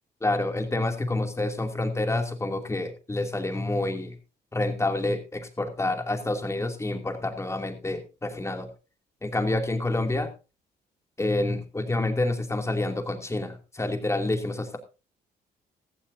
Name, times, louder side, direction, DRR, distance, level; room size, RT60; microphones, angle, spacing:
voice 1, 0.2-4.2 4.5-8.7 9.2-10.3 11.2-14.8, left 2 dB, 15° left, 5 dB, 2.6 m, -28 dB
15.5 x 14.0 x 2.7 m, 0.31 s
cardioid pair, 95°, 18 cm